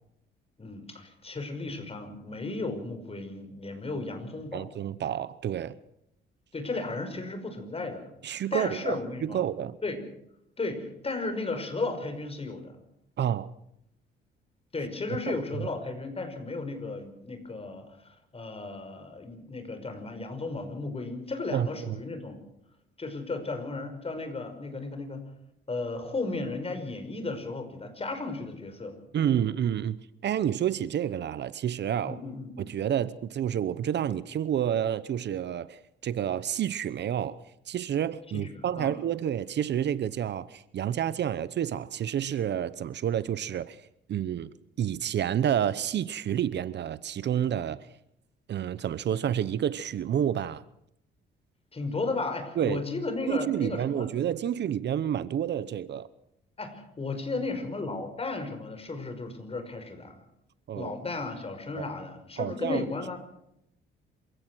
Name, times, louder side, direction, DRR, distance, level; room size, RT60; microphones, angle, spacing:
voice 1, 0.6-4.7 6.5-9.4 9.8-10.0 10.6-12.8 14.7-22.4 23.0-25.2 25.7-29.0 32.0-32.7 38.3-38.9 51.7-54.1 56.6-60.2 60.8-63.2, left 3 dB, 30° left, 5.4 m, -34 dB
voice 2, 4.5-5.8 8.2-9.8 13.2-13.5 15.3-15.7 21.5-22.0 29.1-32.2 32.6-37.4 37.7-43.8 44.1-47.8 48.5-50.6 52.6-52.8 53.3-56.1 60.7-60.9 61.8-61.9 62.4-62.8, right 10 dB, 60° right, 0.9 m, -29 dB
27.0 x 16.5 x 6.3 m
cardioid pair, 90°, 20 cm